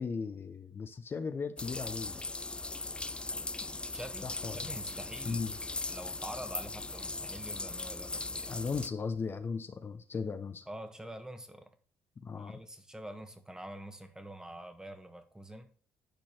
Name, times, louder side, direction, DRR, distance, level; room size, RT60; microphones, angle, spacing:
voice 1, 0.0-2.2 4.2-4.7 5.3-5.6 8.5-10.7 12.2-12.6, left 5 dB, 40° left, 0.9 m, -37 dB
sound 1, 1.6-8.9, left 3 dB, 15° left, 0.4 m, -39 dB
voice 2, 3.9-5.5 5.9-8.5 10.7-11.7 12.4-15.7, right 1 dB, 10° right, 1.4 m, -46 dB
10.5 x 4.5 x 4.4 m
supercardioid pair, 60°, 6 cm